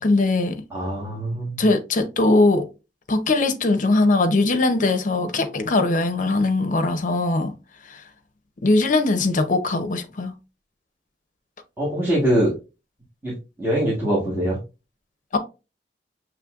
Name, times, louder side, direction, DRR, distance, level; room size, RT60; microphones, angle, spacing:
voice 1, 0.0-0.6 1.6-2.7 3.1-7.5 7.9-8.0 8.6-10.3 15.3-15.4, left 2 dB, 45° left, 0.7 m, -20 dB
voice 2, 0.7-1.6 11.8-12.5 13.2-13.3 13.6-14.6, right 1 dB, 15° right, 1.3 m, -23 dB
6.6 x 3.1 x 2.4 m
head